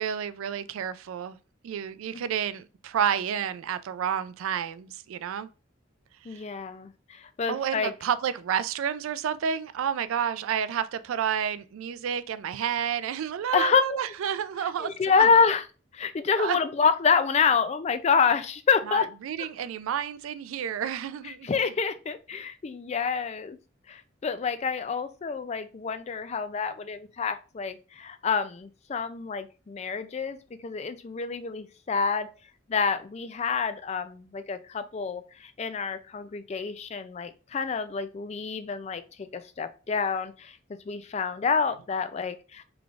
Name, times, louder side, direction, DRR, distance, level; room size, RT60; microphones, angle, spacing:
voice 1, 0.0-1.4 1.6-5.5 6.2-6.4 7.5-15.3 16.4-16.6 18.9-21.5, right 8 dB, 90° right, 0.3 m, -30 dB
voice 2, 6.3-7.9 13.5-14.0 14.8-15.6 15.9-19.1 21.4-23.6 23.9-32.3 32.7-40.6 40.9-42.6, left 5 dB, 35° left, 0.3 m, -27 dB
3.8 x 3.3 x 2.4 m
head